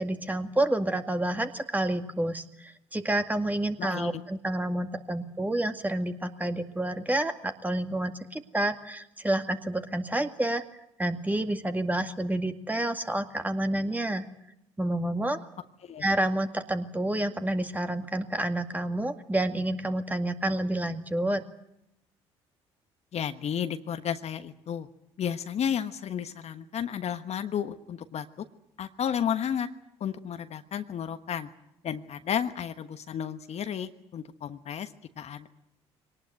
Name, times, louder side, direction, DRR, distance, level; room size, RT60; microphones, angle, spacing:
voice 1, 0.0-10.6 11.0-14.3 14.8-15.4 16.0-21.4, right 1 dB, 10° right, 7 dB, 2.1 m, -29 dB
voice 2, 3.8-4.2 15.8-16.1 23.1-24.9 25.2-28.3 28.8-29.7 30.0-31.5 31.8-34.9 35.2-35.5, left 8 dB, 50° left, 9 dB, 1.3 m, -32 dB
23.5 x 19.0 x 9.2 m, 0.82 s
hypercardioid pair, 55°, 14 cm